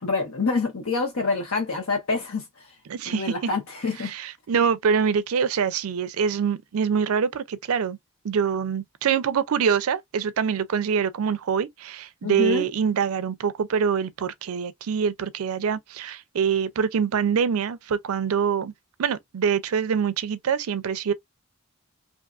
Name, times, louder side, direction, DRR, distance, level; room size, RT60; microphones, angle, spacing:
voice 1, 0.0-2.4 3.1-4.1 12.2-12.7, left 4 dB, 70° left, 0.8 m, -26 dB
voice 2, 2.9-3.3 4.0-8.0 8.2-18.7 19.0-21.1, right 7 dB, 75° right, 0.4 m, -25 dB
2.6 x 2.4 x 2.3 m
head